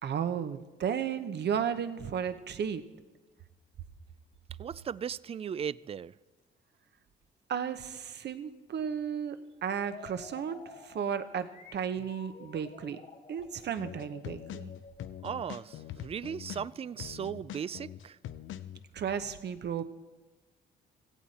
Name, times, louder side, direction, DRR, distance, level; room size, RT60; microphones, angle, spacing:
voice 1, 0.0-2.8 7.5-13.0 13.3-14.7 18.9-19.8, right 8 dB, 60° right, 10 dB, 1.0 m, -34 dB
voice 2, 4.6-6.1 15.2-18.2, right 8 dB, 30° right, 20 dB, 0.3 m, -37 dB
sound 1, 9.8-16.5, left 4 dB, 40° left, 1.7 m, -51 dB
sound 2, 13.8-18.8, left 11 dB, 75° left, 0.7 m, -43 dB
16.5 x 15.0 x 4.2 m, 1.2 s
cardioid pair, 90°, 20 cm